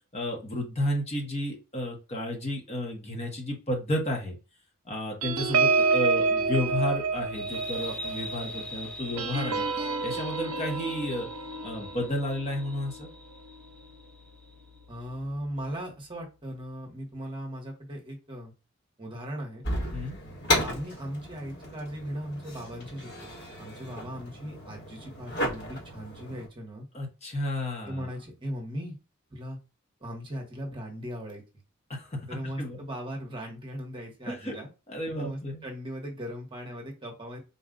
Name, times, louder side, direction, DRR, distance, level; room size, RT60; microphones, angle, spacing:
voice 1, 0.1-4.4 4.9-9.7 10.0-11.3 11.6-13.1 19.9-20.2 26.9-28.1 31.9-32.2 32.6-32.8 34.3-34.6 34.9-35.6, left 1 dB, 30° left, 1 dB, 1.0 m, -32 dB
sound 1, 5.2-14.1 14.6-14.8 15.1-15.4, right 4 dB, 75° right, 0.6 m, -29 dB
sound 2, 7.3-14.5, left 1 dB, 5° left, 0.4 m, -43 dB
voice 2, 14.9-18.5 19.0-19.6 20.6-23.3 23.6-26.8 27.9-29.0 29.3-29.6 30.0-31.4 32.3-34.7 35.2-37.4, equal, 20° right, 0 dB, 1.0 m, -38 dB
sound 3, 19.6-26.5, left 1 dB, 50° left, 1.6 m, -34 dB
4.1 x 2.3 x 3.7 m, 0.29 s
head